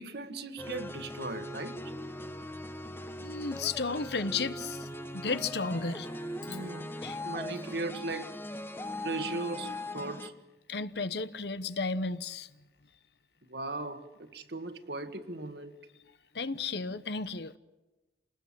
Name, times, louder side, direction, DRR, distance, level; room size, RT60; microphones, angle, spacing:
voice 1, 0.0-1.9 6.5-6.9 7.2-8.4 9.0-10.3 13.5-15.8, right 3 dB, 65° right, 1.8 m, -38 dB
sound 1, 0.6-10.3, left 1 dB, 15° left, 0.9 m, -40 dB
voice 2, 3.2-4.9 5.1-6.1 7.0-7.2 10.7-12.5 16.3-17.6, left 4 dB, 70° left, 1.0 m, -33 dB
28.5 x 20.0 x 7.6 m
head